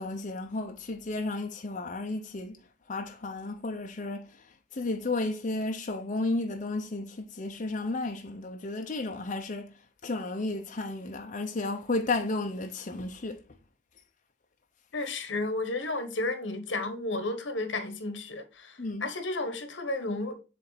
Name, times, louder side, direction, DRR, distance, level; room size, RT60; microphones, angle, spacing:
voice 1, 0.0-2.6 2.9-9.7 10.0-13.4 18.8-19.1, left 2 dB, 45° left, 0.7 m, -33 dB
voice 2, 14.9-20.4, left 2 dB, 90° left, 1.3 m, -32 dB
7.6 x 3.4 x 4.1 m
head